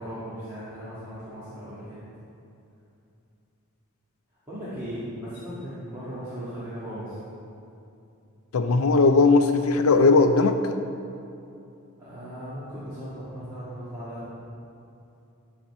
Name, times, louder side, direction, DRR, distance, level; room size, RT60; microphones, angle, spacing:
voice 1, 0.0-2.0 4.5-7.2 12.0-14.3, equal, 15° right, -14 dB, 2.0 m, -37 dB
voice 2, 8.5-10.6, left 3 dB, 75° left, 7 dB, 0.5 m, -18 dB
12.0 x 4.3 x 5.5 m, 2.7 s
head